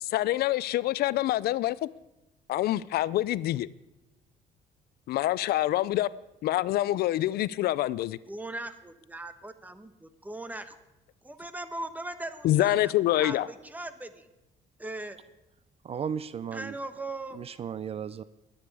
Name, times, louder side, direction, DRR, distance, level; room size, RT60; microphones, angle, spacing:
voice 1, 0.0-1.8 2.5-3.7 5.1-6.1 6.4-8.2 12.4-13.5, left 14 dB, 65° left, 0.4 m, -26 dB
voice 2, 8.3-10.8 11.2-12.9 13.2-14.3 14.8-15.2 16.5-17.4, right 2 dB, 10° right, 1.0 m, -39 dB
voice 3, 15.8-16.7 17.4-18.2, right 7 dB, 35° right, 0.4 m, -35 dB
21.0 x 8.8 x 4.8 m
cardioid pair, 110°, 17 cm